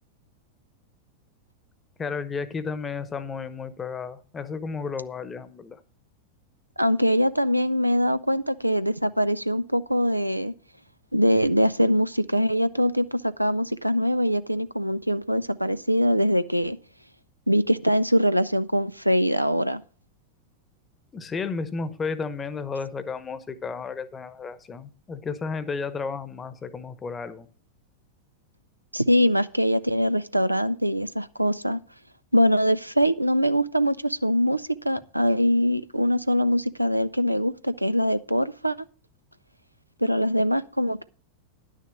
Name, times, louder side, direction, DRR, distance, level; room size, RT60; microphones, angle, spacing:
voice 1, 2.0-5.8 21.1-27.5, left 5 dB, 20° left, 1.0 m, -33 dB
voice 2, 6.8-10.5 11.1-16.8 17.5-19.8 28.9-31.8 32.3-38.8 40.0-41.0, equal, 90° right, 0.4 m, -23 dB
10.5 x 6.4 x 6.2 m
figure-of-eight pair, 90°, 0 cm